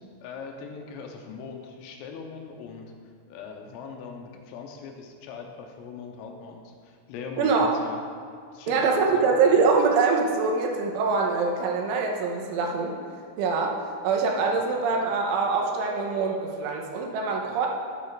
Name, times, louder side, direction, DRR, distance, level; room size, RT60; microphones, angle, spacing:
voice 1, 0.2-2.9 3.3-8.0 8.5-9.3, left 5 dB, 85° left, 2 dB, 3.5 m, -40 dB
voice 2, 7.4-7.7 8.7-12.9 13.4-17.7, right 4 dB, 80° right, 0 dB, 3.2 m, -24 dB
12.5 x 10.5 x 2.5 m, 2.3 s
omnidirectional pair, 5.8 m